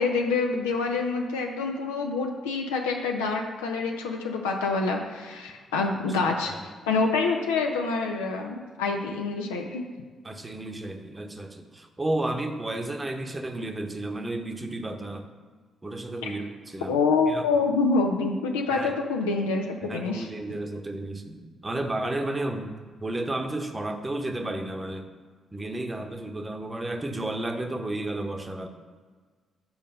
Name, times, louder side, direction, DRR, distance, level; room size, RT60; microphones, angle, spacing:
voice 1, 0.0-6.5 6.9-9.8 16.2-16.3 16.9-20.3, left 4 dB, 80° left, 2 dB, 0.5 m, -26 dB
voice 2, 6.1-6.5 10.2-15.3 15.8-17.0 17.3-17.4 18.7-18.9 19.8-22.8 23.0-25.1 25.5-28.7, right 1 dB, 25° right, 5 dB, 0.8 m, -32 dB
5.6 x 4.3 x 5.4 m, 1.5 s
hypercardioid pair, 40°, 0 cm